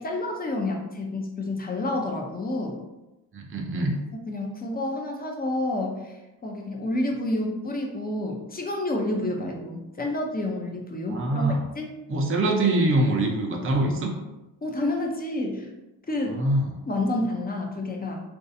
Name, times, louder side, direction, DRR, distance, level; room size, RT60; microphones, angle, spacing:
voice 1, 0.0-2.8 4.3-6.1 6.4-11.9 14.6-15.7 16.1-16.4 16.9-18.2, left 1 dB, 20° left, 1 dB, 0.6 m, -29 dB
voice 2, 3.3-4.0 11.1-11.6 12.1-14.1 16.3-16.7, right 2 dB, 25° right, 1 dB, 0.7 m, -24 dB
3.0 x 2.6 x 2.7 m, 1.0 s
hypercardioid pair, 60°, 50 cm